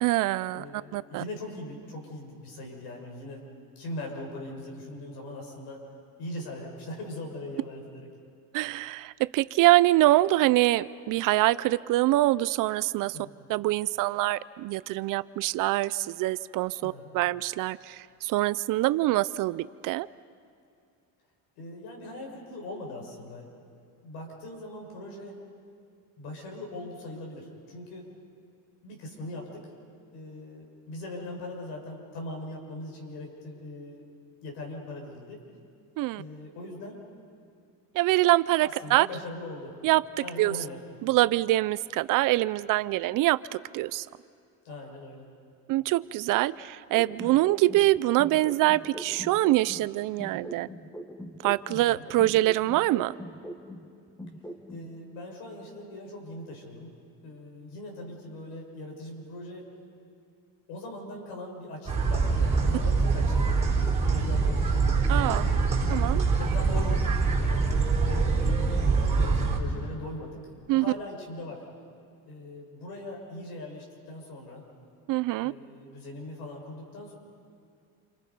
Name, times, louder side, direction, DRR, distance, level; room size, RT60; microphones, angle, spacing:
voice 1, 0.0-0.6 0.9-1.2 8.5-13.1 13.5-20.1 36.0-36.2 37.9-39.1 39.8-40.0 40.4-40.5 41.0-43.4 43.7-44.0 45.7-50.7 51.4-53.1 65.1-65.5 65.9-66.3 70.7-70.8 75.1-75.5, right 17 dB, 55° right, 18 dB, 0.5 m, -24 dB
voice 2, 0.5-3.5 3.8-5.8 6.2-8.1 13.0-13.3 16.8-17.1 21.6-23.5 24.0-25.4 26.2-28.1 28.8-29.6 30.1-34.0 34.4-35.4 36.2-37.0 38.6-39.8 40.2-40.8 44.6-45.3 51.7-52.0 54.7-56.9 57.2-59.6 60.7-63.5 64.0-64.9 65.4-65.9 66.4-67.1 67.4-67.7 68.0-68.8 69.1-71.6 72.2-74.6 75.4-77.1, left 1 dB, 80° left, 0 dB, 6.0 m, -40 dB
sound 1, 46.9-49.9 50.2-53.9 54.2-54.9, equal, 5° left, 1.2 m, -42 dB
sound 2, 61.9-69.6, right 4 dB, 15° right, 3.9 m, -24 dB
28.5 x 26.0 x 5.4 m, 2.3 s
cardioid pair, 150°, 40 cm